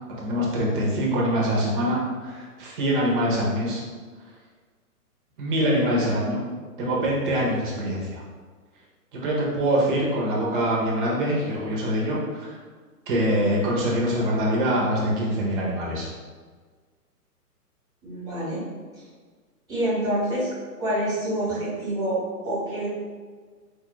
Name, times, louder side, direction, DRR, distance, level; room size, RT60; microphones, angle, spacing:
voice 1, 0.2-3.8 5.4-6.4 6.8-8.2 9.1-12.6 13.1-16.1, equal, 30° right, -3 dB, 0.9 m, -24 dB
voice 2, 18.0-18.6 19.7-20.5 20.8-22.9, right 1 dB, 10° right, -9 dB, 1.3 m, -27 dB
4.3 x 2.5 x 3.0 m, 1.5 s
hypercardioid pair, 145°, 47 cm